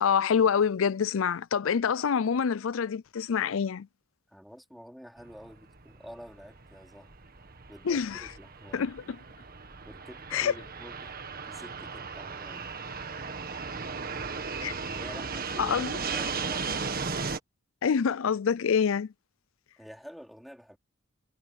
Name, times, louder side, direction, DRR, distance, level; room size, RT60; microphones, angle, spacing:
voice 1, 0.0-3.9 7.9-8.3 8.7-9.0 10.3-10.5 14.6-14.7 15.6-15.9 17.8-19.1, left 6 dB, 70° left, 0.5 m, -26 dB
voice 2, 4.3-7.1 7.7-8.9 9.8-11.2 11.5-12.7 14.9-17.0 19.8-20.8, equal, ahead, 3.1 m, -48 dB
Fixed-wing aircraft airplane, 5.2-17.4, right 5 dB, 45° right, 1.6 m, -36 dB
head